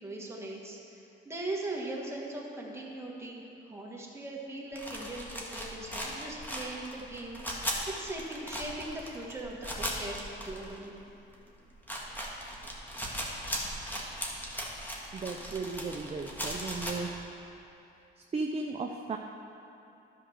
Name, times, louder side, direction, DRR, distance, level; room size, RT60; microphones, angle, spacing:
voice 1, 0.0-10.2 10.4-11.0, right 2 dB, 15° right, -2 dB, 1.8 m, -40 dB
sound 1, 4.7-11.0 11.3-11.4 11.7-16.9, equal, 10° left, 1.7 m, -38 dB
voice 2, 15.1-17.1 18.3-19.2, right 3 dB, 30° right, 3 dB, 0.6 m, -35 dB
12.0 x 5.0 x 6.3 m, 2.8 s
cardioid pair, 90°, 20 cm